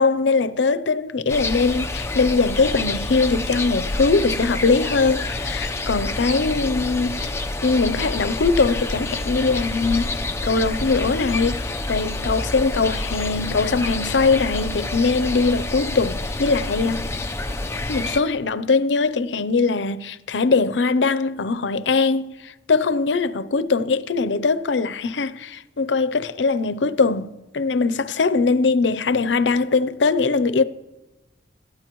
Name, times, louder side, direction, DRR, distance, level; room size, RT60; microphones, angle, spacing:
voice 1, 0.0-7.3 7.6-10.1 10.4-17.1 17.9-30.6, left 4 dB, 80° left, 0.6 m, -21 dB
sound 1, 1.3-18.2, left 2 dB, 15° left, 0.7 m, -28 dB
27.0 x 13.0 x 3.1 m
head